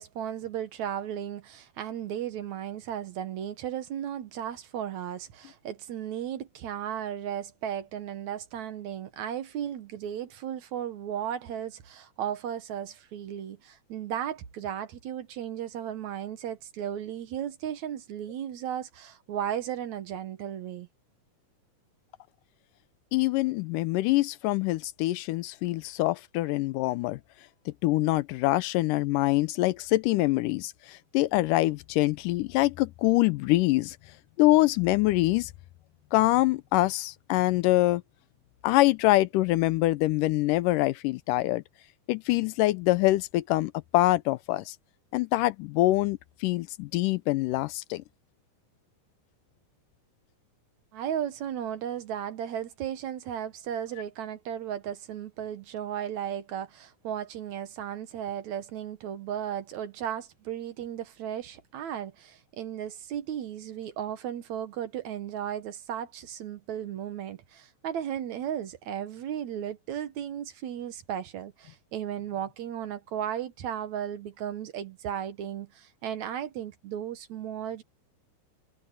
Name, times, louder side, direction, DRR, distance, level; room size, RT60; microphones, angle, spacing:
voice 1, 0.0-20.9 50.9-77.8, right 10 dB, 65° right, 2.2 m, -35 dB
voice 2, 23.1-27.2 27.7-34.0 34.4-35.5 36.1-38.0 38.6-41.6 42.1-44.8 45.1-48.0, left 18 dB, 80° left, 2.1 m, -25 dB
omnidirectional pair, 3.9 m